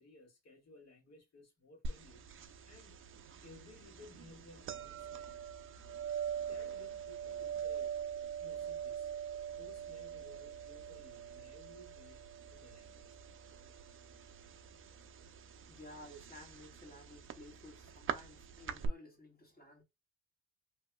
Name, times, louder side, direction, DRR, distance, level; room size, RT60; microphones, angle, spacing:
voice 1, 0.0-3.0 3.4-5.4 6.5-8.1 8.4-9.1 9.5-13.1, left 2 dB, 60° left, 1.8 m, -59 dB
sound 1, 1.8-18.9, right 8 dB, 45° right, 0.5 m, -44 dB
voice 2, 15.7-19.8, left 1 dB, 30° left, 1.5 m, -54 dB
2.9 x 2.7 x 2.2 m
cardioid pair, 90°, 30 cm